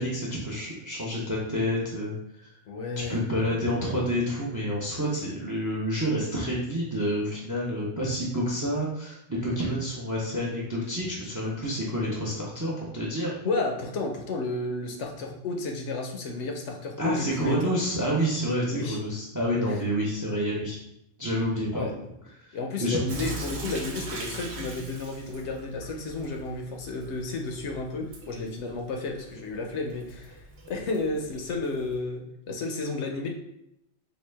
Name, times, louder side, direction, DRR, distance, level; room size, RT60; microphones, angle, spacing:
voice 1, 0.0-2.1 2.4-2.5 3.1-13.4 17.0-20.8 21.2-22.0 22.4-23.2, equal, 20° right, -3 dB, 0.5 m, -28 dB
voice 2, 2.7-3.2 13.4-17.7 18.7-19.0 19.7-19.8 21.7-21.9 22.5-33.3, left 3 dB, 70° left, 2 dB, 0.9 m, -32 dB
Sink (filling or washing) / Drip, 23.1-32.0, right 2 dB, 75° right, 1.0 m, -41 dB
3.9 x 2.3 x 3.2 m, 0.79 s
omnidirectional pair, 1.3 m